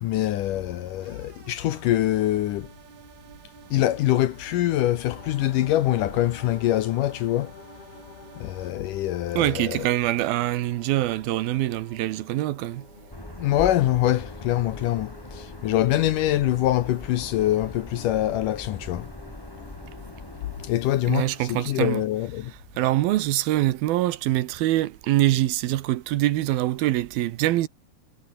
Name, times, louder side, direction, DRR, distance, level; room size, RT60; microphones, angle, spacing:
voice 1, 0.0-2.7 3.7-7.5 8.4-9.9 13.4-19.1 20.6-22.5, left 14 dB, 75° left, 2.2 m, -24 dB
sound 1, 1.0-8.7, right 6 dB, 50° right, 4.4 m, -51 dB
sound 2, 5.0-21.9, left 5 dB, 40° left, 4.2 m, -49 dB
voice 2, 9.3-12.8 21.1-22.0 22.8-27.7, right 15 dB, 75° right, 2.8 m, -24 dB
sound 3, 13.1-20.7, left 1 dB, 10° left, 1.3 m, -41 dB
omnidirectional pair, 4.4 m